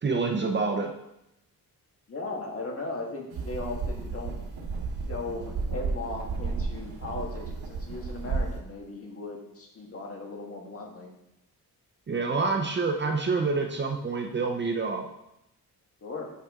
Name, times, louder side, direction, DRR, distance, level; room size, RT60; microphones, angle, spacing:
voice 1, 0.0-0.9 12.1-15.0, right 4 dB, 30° right, 2 dB, 0.7 m, -27 dB
voice 2, 2.1-4.4 5.1-11.1 12.1-12.8 16.0-16.3, left 2 dB, 40° left, 0 dB, 1.6 m, -37 dB
sound 1, 3.3-8.6, right 4 dB, 85° right, 1.2 m, -33 dB
8.2 x 6.0 x 3.7 m, 0.85 s
wide cardioid pair, 130°, 36 cm